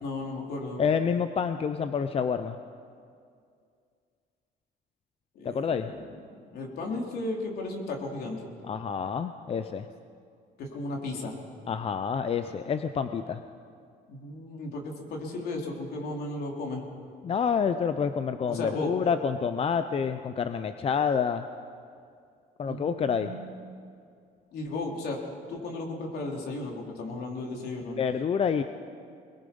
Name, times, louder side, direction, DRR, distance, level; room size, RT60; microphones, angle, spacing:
voice 1, 0.0-0.8 5.4-6.0 6.3-8.5 10.6-11.4 14.1-16.8 18.5-18.9 22.6-23.5 24.5-25.2 25.5-28.0, left 2 dB, 70° left, 0 dB, 3.9 m, -35 dB
voice 2, 0.8-2.6 5.4-5.9 8.6-9.9 11.7-13.4 17.2-21.4 22.6-23.3 28.0-28.6, left 6 dB, 35° left, 9 dB, 0.7 m, -28 dB
23.5 x 21.0 x 5.5 m, 2.3 s
cardioid pair, 110°, 17 cm